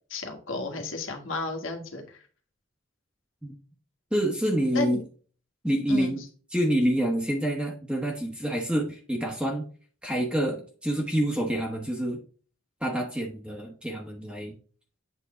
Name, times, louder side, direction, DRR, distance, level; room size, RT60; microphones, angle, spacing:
voice 1, 0.1-2.2 4.7-5.0 5.9-6.1, left 3 dB, 85° left, 4 dB, 1.7 m, -32 dB
voice 2, 4.1-5.0 5.6-6.2 6.5-9.6 10.0-12.2 12.8-14.5, right 1 dB, 5° right, 0 dB, 1.1 m, -27 dB
8.1 x 3.9 x 3.7 m, 0.40 s
head